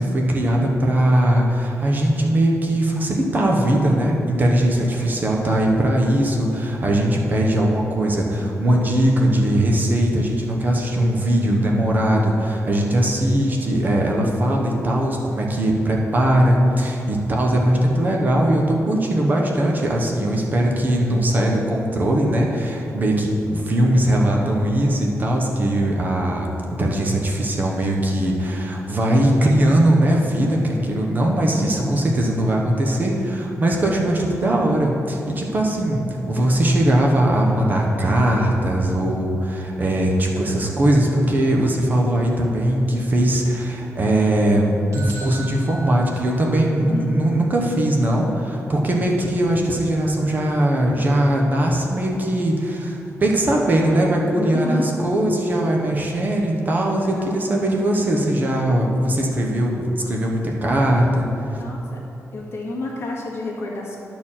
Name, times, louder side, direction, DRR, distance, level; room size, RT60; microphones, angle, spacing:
voice 1, 0.0-61.3 61.5-61.6, right 1 dB, 35° right, -1 dB, 1.0 m, -20 dB
voice 2, 4.8-5.1 46.8-47.1 54.3-54.9 57.0-57.4 61.5-62.0 62.3-64.0, left 2 dB, 50° left, -3 dB, 1.7 m, -30 dB
sound 1, 44.9-46.9, right 3 dB, 60° right, 1.8 m, -39 dB
10.5 x 4.5 x 7.3 m, 2.8 s
wide cardioid pair, 170°, 6 cm